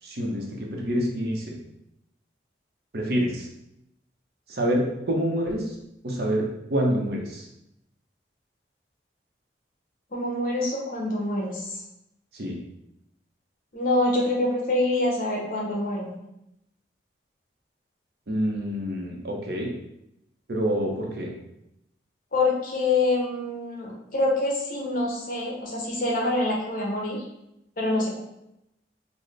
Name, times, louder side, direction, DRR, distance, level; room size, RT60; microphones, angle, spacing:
voice 1, 0.0-1.6 2.9-3.5 4.5-5.8 6.0-7.5 12.3-12.6 18.3-19.7 20.5-21.3, equal, 60° right, -1 dB, 0.6 m, -27 dB
voice 2, 10.1-11.8 13.7-16.1 22.3-27.2 27.8-28.2, left 2 dB, 45° left, -2 dB, 0.8 m, -26 dB
3.9 x 2.1 x 3.2 m, 0.84 s
head